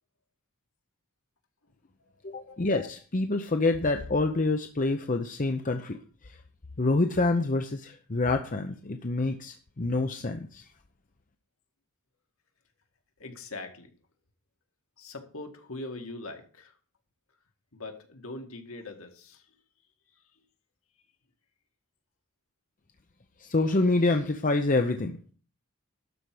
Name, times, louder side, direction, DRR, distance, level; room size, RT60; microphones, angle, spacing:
voice 1, 2.2-6.0 6.8-10.6 23.4-25.2, left 2 dB, 35° left, 6 dB, 0.7 m, -27 dB
voice 2, 13.2-13.9 15.0-16.7 17.7-19.4, left 2 dB, 65° left, 4 dB, 2.0 m, -41 dB
12.5 x 4.8 x 7.7 m, 0.41 s
head